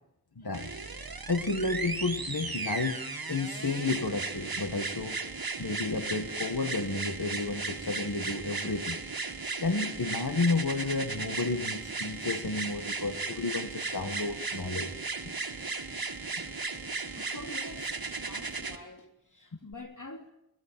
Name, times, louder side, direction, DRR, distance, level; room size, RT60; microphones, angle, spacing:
voice 1, 0.4-0.7 1.3-5.2 5.6-9.0 9.6-14.9, left 3 dB, 85° left, 6 dB, 1.8 m, -31 dB
sound 1, 0.5-18.8 19.7-19.8, right 4 dB, 70° right, 1.8 m, -36 dB
voice 2, 17.0-20.3, left 2 dB, 55° left, 4 dB, 3.1 m, -46 dB
23.0 x 17.0 x 9.1 m, 0.81 s
wide cardioid pair, 50°, 36 cm